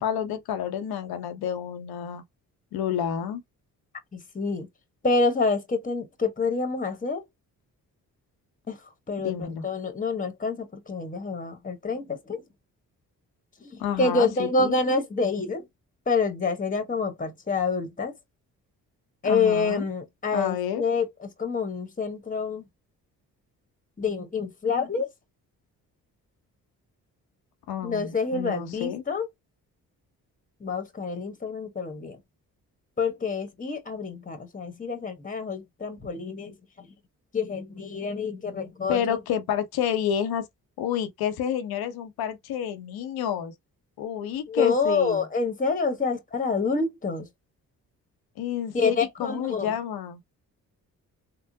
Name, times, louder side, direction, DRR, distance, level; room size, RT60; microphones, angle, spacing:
voice 1, 0.0-2.2 2.7-3.4 9.2-9.7 13.8-14.7 19.2-19.9 20.3-20.8 27.7-29.0 38.9-40.5 40.8-43.5 44.0-45.3 48.4-50.2, left 9 dB, 80° left, 0.8 m, -29 dB
voice 2, 4.1-4.7 5.0-7.2 8.7-8.8 9.1-12.4 14.0-15.6 16.1-18.1 19.2-21.1 21.4-22.6 24.0-25.1 27.8-29.3 30.6-32.2 33.0-36.5 37.3-39.2 44.5-47.3 48.7-49.7, left 4 dB, 20° left, 1.2 m, -27 dB
3.6 x 2.0 x 2.7 m
supercardioid pair, 65°, 36 cm